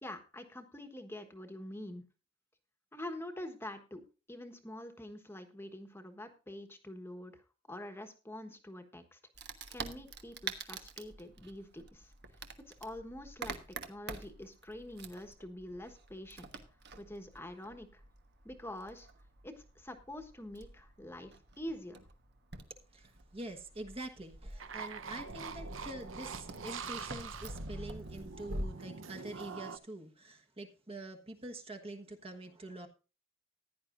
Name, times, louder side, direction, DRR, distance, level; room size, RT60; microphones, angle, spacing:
voice 1, 0.0-2.0 2.9-4.0 4.3-7.4 7.7-9.2 9.7-12.1 12.7-13.6 13.9-16.5 17.0-18.0 18.4-19.1 19.4-22.0, left 1 dB, 10° left, 7 dB, 1.3 m, -46 dB
Wood, 9.3-28.7, right 3 dB, 60° right, 1.3 m, -47 dB
voice 2, 22.9-32.9, right 1 dB, 30° right, 6 dB, 1.3 m, -46 dB
sound 1, 24.6-29.8, right 5 dB, 75° right, 0.9 m, -44 dB
15.5 x 10.5 x 2.6 m, 0.33 s
head